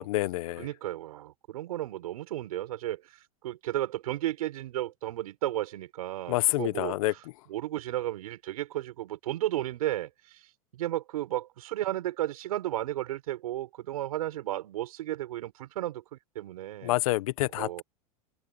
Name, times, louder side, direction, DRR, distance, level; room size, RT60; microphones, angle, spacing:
voice 1, 0.0-0.7 6.3-7.1 16.8-17.8, left 17 dB, 70° left, 1.3 m, -28 dB
voice 2, 0.6-3.2 3.4-7.0 7.5-10.4 10.7-17.0 17.5-17.8, right 14 dB, 80° right, 6.9 m, -33 dB
supercardioid pair, 140°, 18 cm